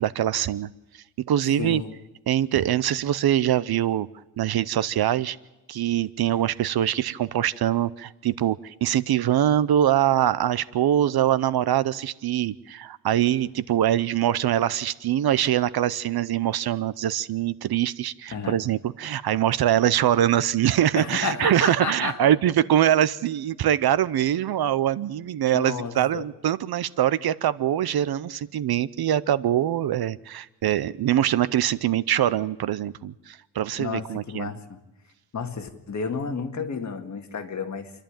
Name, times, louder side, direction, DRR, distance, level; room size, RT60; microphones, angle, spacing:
voice 1, 0.0-1.8 2.3-4.1 4.4-5.4 5.7-34.5, right 11 dB, 60° right, 18 dB, 0.6 m, -23 dB
voice 2, 1.6-1.9 18.3-18.6 21.0-22.2 25.5-26.2 33.8-34.6 35.3-37.9, left 5 dB, 40° left, 5 dB, 1.9 m, -31 dB
29.0 x 11.5 x 8.8 m, 1.0 s
wide cardioid pair, 170°, 42 cm